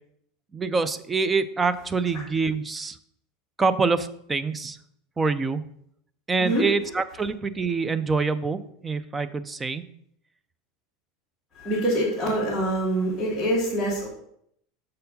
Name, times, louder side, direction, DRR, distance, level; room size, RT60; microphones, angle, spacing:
voice 1, 0.5-3.0 3.6-4.8 5.2-5.6 6.3-9.8, right 4 dB, 10° right, 14 dB, 0.4 m, -25 dB
voice 2, 11.6-14.1, right 1 dB, 5° left, -10 dB, 1.7 m, -25 dB
6.5 x 4.5 x 5.3 m, 0.70 s
supercardioid pair, 160°, 0 cm